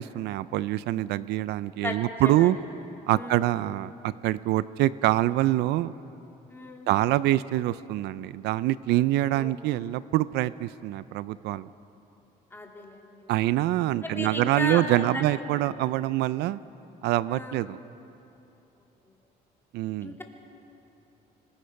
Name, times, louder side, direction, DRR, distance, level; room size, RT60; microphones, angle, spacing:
voice 1, 0.0-2.6 3.1-5.9 6.9-11.7 13.3-16.6 17.0-17.8 19.7-20.2, right 15 dB, 80° right, 17 dB, 0.5 m, -25 dB
voice 2, 1.8-2.5 3.1-3.5 6.5-6.9 9.3-9.5 12.5-13.0 14.0-15.3 17.3-17.6 20.0-20.2, left 2 dB, 15° left, 0 dB, 3.1 m, -35 dB
25.5 x 21.0 x 5.8 m, 2.9 s
cardioid pair, 110°, 17 cm